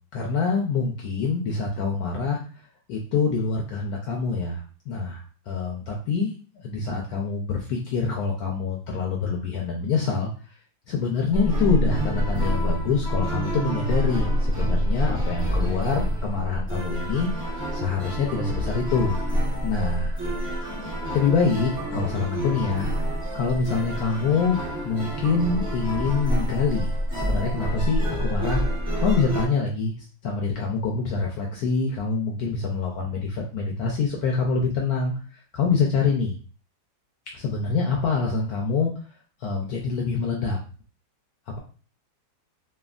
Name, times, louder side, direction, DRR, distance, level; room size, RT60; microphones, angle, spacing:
voice 1, 0.1-2.4 2.9-6.3 6.6-10.3 10.9-19.2 19.6-20.2 21.1-22.9 23.3-24.6 24.8-28.6 29.0-29.9 30.2-35.1 35.5-36.3 37.3-38.9 39.4-40.6, left 5 dB, 75° left, -1 dB, 0.9 m, -25 dB
sound 1, 11.3-29.5, equal, 5° right, 0.5 m, -27 dB
3.3 x 2.1 x 2.4 m, 0.37 s
omnidirectional pair, 2.1 m